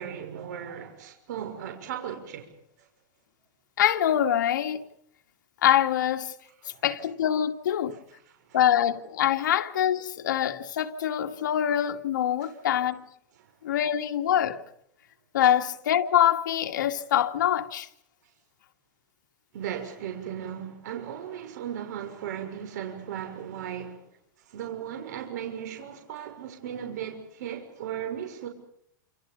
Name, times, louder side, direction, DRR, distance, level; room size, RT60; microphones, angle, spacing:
voice 1, 0.0-2.5 6.6-6.8 19.5-24.0 24.5-28.5, right 9 dB, 65° right, 6.2 m, -36 dB
voice 2, 3.8-4.8 5.6-6.3 6.8-8.0 8.5-13.1 13.6-14.6 15.3-17.9, left 10 dB, 75° left, 2.2 m, -24 dB
28.5 x 28.0 x 5.4 m
supercardioid pair, 155°, 10 cm